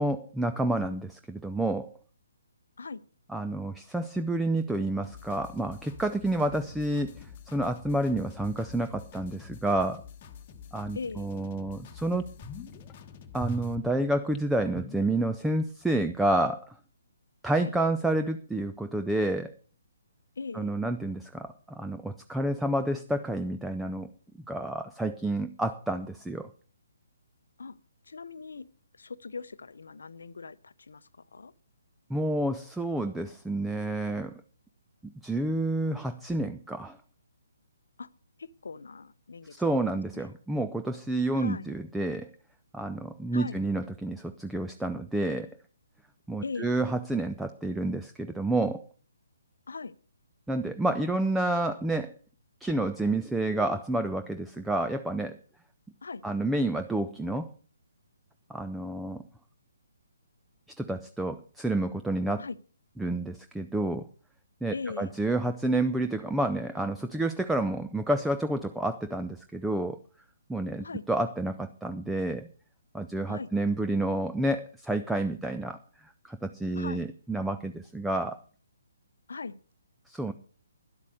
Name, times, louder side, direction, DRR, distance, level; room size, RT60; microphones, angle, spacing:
voice 1, 0.0-2.0 3.3-10.0 10.7-12.3 13.3-16.7 17.4-19.5 20.5-24.1 24.5-26.5 32.1-34.4 35.0-37.0 39.5-42.3 42.7-45.5 46.3-48.9 50.5-52.1 52.6-55.4 56.2-57.5 58.5-59.2 60.8-62.4 63.0-64.0 64.6-70.0 70.5-72.5 72.9-75.8 76.2-78.4 80.1-80.3, right 2 dB, 5° right, 0.5 m, -29 dB
sound 1, 5.0-13.7, left 7 dB, 30° left, 1.2 m, -48 dB
voice 2, 10.9-11.3 17.6-17.7 20.4-20.8 27.6-27.8 28.0-28.7 28.9-31.5 38.0-38.1 38.4-39.5 40.1-40.3 41.3-41.7 43.3-43.6 46.4-46.8 49.7-49.9 56.0-56.2 62.4-62.6 64.7-65.1 70.8-71.0 73.3-73.5 76.7-77.1 79.3-79.6, left 4 dB, 65° left, 0.7 m, -39 dB
sound 2, 11.1-11.2 11.7-11.8 12.1-12.9 13.4-15.6 15.9-16.0, equal, 15° left, 0.9 m, -42 dB
11.0 x 8.3 x 6.4 m
figure-of-eight pair, 135°, 0 cm